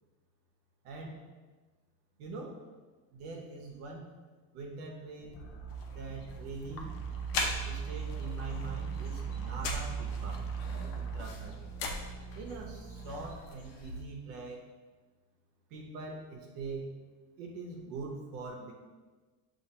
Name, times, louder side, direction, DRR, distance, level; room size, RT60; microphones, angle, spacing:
voice 1, 0.8-1.2 2.2-2.6 3.1-4.1 4.5-5.4 5.9-6.9 7.6-10.4 10.7-11.6 12.3-14.6 15.7-16.9 17.4-18.7, right 3 dB, 70° right, 0 dB, 0.9 m, -43 dB
sound 1, 5.2-13.8, right 6 dB, 30° left, 0.5 m, -39 dB
sound 2, 5.7-14.0, left 3 dB, 80° left, 0.9 m, -41 dB
6.3 x 2.6 x 2.9 m, 1.3 s
supercardioid pair, 120°, 49 cm